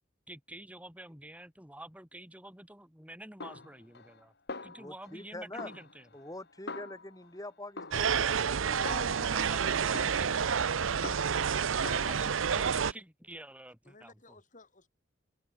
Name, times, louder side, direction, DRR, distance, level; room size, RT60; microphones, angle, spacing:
voice 1, 0.3-4.3 4.6-6.1 8.8-10.6 12.1-14.4, right 1 dB, 5° right, 5.2 m, -48 dB
Snare drum, 3.4-4.2 4.5-5.3 5.6-7.4 7.8-9.4 9.9-11.5 11.9-12.1, left 3 dB, 55° left, 3.1 m, -44 dB
voice 2, 4.8-5.7 6.1-9.1 9.8-10.1, left 1 dB, 20° left, 5.3 m, -45 dB
sound 1, 7.9-12.9, right 7 dB, 85° right, 0.7 m, -29 dB
voice 3, 11.5-12.1 13.8-14.9, left 2 dB, 40° left, 5.3 m, -57 dB
head